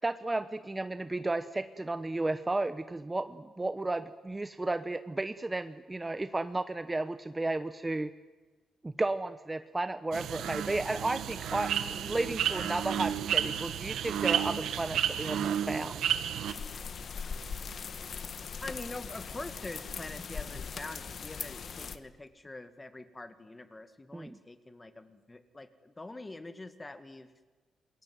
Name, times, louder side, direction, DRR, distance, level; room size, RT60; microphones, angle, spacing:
voice 1, 0.0-8.1 8.8-16.0 24.1-24.4, right 2 dB, 15° right, 11 dB, 0.9 m, -33 dB
sound 1, 10.1-16.5, right 9 dB, 85° right, 1.9 m, -31 dB
sound 2, 16.5-22.0, left 6 dB, 50° left, 1.5 m, -40 dB
voice 2, 18.6-27.3, left 2 dB, 15° left, 10 dB, 2.1 m, -45 dB
27.0 x 21.5 x 9.6 m, 1.3 s
cardioid pair, 120°, 0 cm